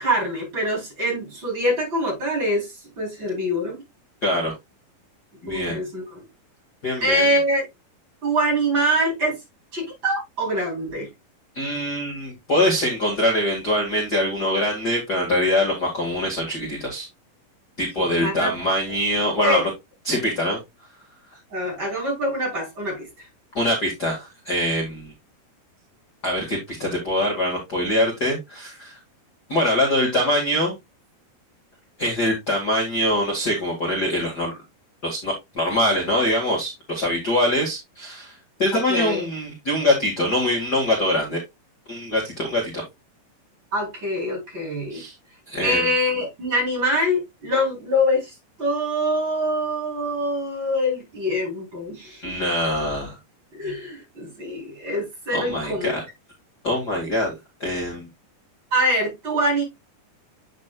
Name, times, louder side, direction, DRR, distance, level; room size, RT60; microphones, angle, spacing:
voice 1, 0.0-3.8 5.4-6.2 7.0-7.7 8.2-9.4 9.7-11.1 18.0-18.7 19.4-19.7 21.5-23.3 38.7-39.2 43.7-45.0 45.6-52.4 53.5-55.9 58.7-59.6, equal, 30° right, 4.6 m, -24 dB
voice 2, 4.2-4.5 5.4-5.8 6.8-7.2 11.6-17.1 17.8-19.7 20.0-20.6 23.5-25.1 26.2-28.9 29.5-30.7 32.0-34.5 35.0-38.3 38.6-41.4 41.9-42.8 44.9-45.1 45.5-45.8 52.2-53.1 55.3-55.9 56.6-57.3 57.6-58.0, left 1 dB, 35° left, 2.0 m, -23 dB
8.4 x 6.5 x 2.4 m
omnidirectional pair, 4.3 m